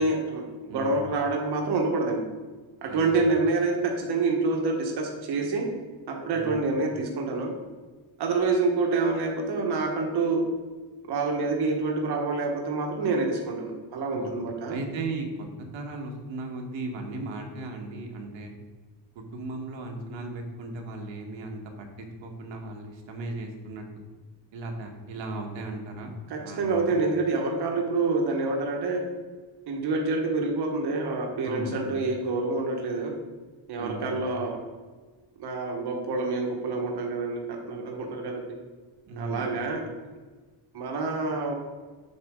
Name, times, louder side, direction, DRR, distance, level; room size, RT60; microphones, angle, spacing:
voice 1, 0.0-2.2 2.8-5.6 6.1-7.5 8.2-10.4 11.1-14.8 26.3-29.1 29.7-33.1 33.7-34.6 35.4-38.5 39.2-39.8 40.7-41.5, right 3 dB, 55° right, 1 dB, 1.3 m, -27 dB
voice 2, 2.9-3.2 6.3-6.6 14.1-14.3 14.7-15.5 15.7-18.5 19.1-23.8 24.5-27.0 31.4-32.0 33.8-34.1 39.1-39.5, right 2 dB, 80° right, 2 dB, 1.4 m, -36 dB
8.1 x 5.0 x 3.6 m, 1.3 s
cardioid pair, 125°, 46 cm